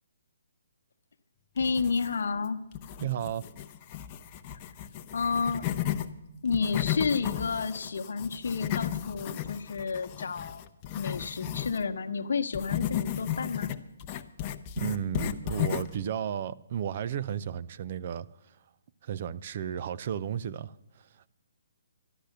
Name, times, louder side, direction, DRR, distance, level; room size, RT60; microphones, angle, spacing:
voice 1, 1.6-2.6 5.1-5.7 6.4-10.6 11.0-13.7, left 5 dB, 70° left, 1.0 m, -30 dB
sound 1, 1.6-2.4 2.7-6.1 6.4-11.8 12.5-16.0, left 11 dB, 30° left, 0.7 m, -34 dB
voice 2, 3.0-3.5 14.8-18.5 19.0-21.3, right 9 dB, 45° right, 0.5 m, -34 dB
12.0 x 11.5 x 6.6 m
hypercardioid pair, 150°, 0 cm